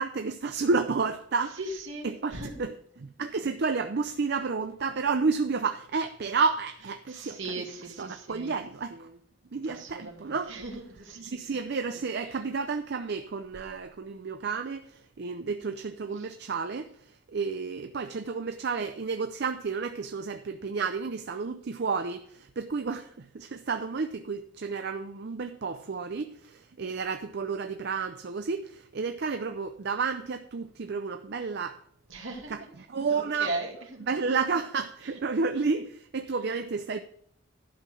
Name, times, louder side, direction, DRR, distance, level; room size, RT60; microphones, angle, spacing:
voice 1, 0.0-1.6 2.0-9.2 9.5-10.6 11.2-31.8 32.5-33.5 34.0-37.0, right 4 dB, 55° right, 0.5 m, -31 dB
voice 2, 1.6-2.5 7.1-8.5 9.7-11.3 32.1-32.5 33.1-34.0, right 2 dB, 70° right, 2.3 m, -38 dB
11.0 x 5.8 x 6.3 m
head